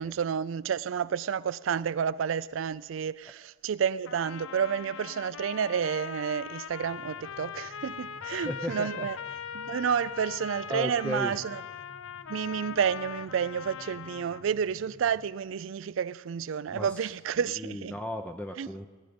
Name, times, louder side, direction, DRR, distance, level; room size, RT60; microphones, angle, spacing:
voice 1, 0.0-9.2 9.5-11.6 12.3-18.0 18.6-18.7, right 7 dB, 70° right, 0.4 m, -30 dB
Trumpet, 4.0-14.5, left 8 dB, 70° left, 0.4 m, -41 dB
sound 1, 6.8-15.3, left 1 dB, 40° left, 1.0 m, -55 dB
voice 2, 8.2-9.1 10.7-11.3 16.7-16.9 17.6-18.9, left 1 dB, 5° left, 0.6 m, -35 dB
18.0 x 10.5 x 5.2 m
head